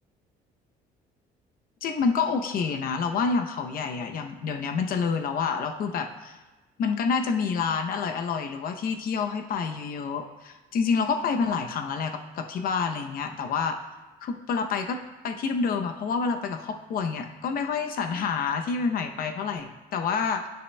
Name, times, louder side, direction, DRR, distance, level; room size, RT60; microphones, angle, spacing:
voice 1, 1.8-6.4 6.8-13.8 14.2-20.5, left 5 dB, 60° left, 5 dB, 0.7 m, -28 dB
9.6 x 6.5 x 2.2 m, 1.2 s
cardioid pair, 110°, 17 cm